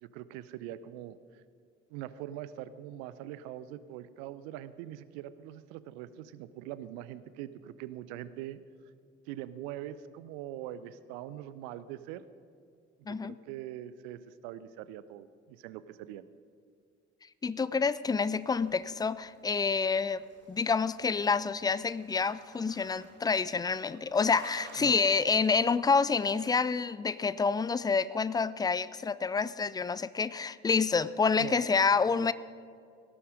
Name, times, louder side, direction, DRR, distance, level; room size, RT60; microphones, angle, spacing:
voice 1, 0.0-1.4 1.9-8.6 9.3-12.2 13.1-16.3 24.8-25.0 31.4-32.3, right 12 dB, 60° right, 15 dB, 0.7 m, -43 dB
voice 2, 17.4-20.2 20.5-32.3, left 5 dB, 10° left, 17 dB, 0.4 m, -28 dB
sound 1, 18.4-26.6, right 3 dB, 30° right, 3.2 m, -56 dB
17.5 x 11.5 x 5.1 m, 2.3 s
figure-of-eight pair, 50°, 35 cm